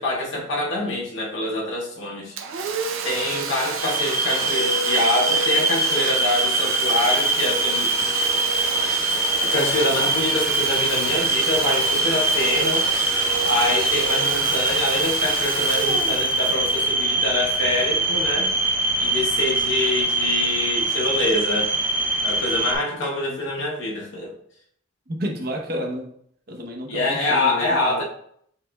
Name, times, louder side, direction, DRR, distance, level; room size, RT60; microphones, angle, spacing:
voice 1, 0.0-2.3 3.0-7.9 9.4-12.9 13.4-18.5 19.0-21.7 22.2-24.3 26.9-28.0, left 2 dB, 65° left, -2 dB, 0.9 m, -25 dB
Domestic sounds home sounds, 2.4-17.8, right 5 dB, 80° right, 0.6 m, -29 dB
sound 1, 3.8-22.8, right 2 dB, 10° right, 0.5 m, -23 dB
voice 2, 25.1-26.1 26.5-28.0, equal, 50° right, 1 dB, 0.8 m, -31 dB
6.6 x 3.2 x 2.2 m, 0.66 s
head